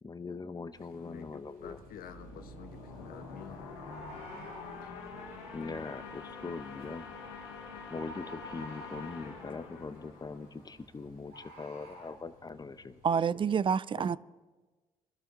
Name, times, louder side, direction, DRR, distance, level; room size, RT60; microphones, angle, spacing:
voice 1, 0.0-1.8 5.5-7.1 7.9-13.0 14.0-14.2, left 4 dB, 25° left, 0.9 m, -41 dB
sound 1, 0.7-13.3, right 1 dB, 60° right, 2.8 m, -64 dB
voice 2, 0.9-3.6 4.8-5.0 14.1-14.2, left 8 dB, 65° left, 1.4 m, -50 dB
sound 2, 1.6-11.1, left 4 dB, 85° left, 2.1 m, -46 dB
Bird, 2.2-2.3 3.9-4.8 7.1-7.3 7.9-9.3 11.3-12.1, right 1 dB, 75° right, 6.1 m, -48 dB
voice 3, 13.0-14.2, right 6 dB, 30° right, 0.4 m, -28 dB
23.5 x 12.5 x 3.9 m
hypercardioid pair, 55°, 16 cm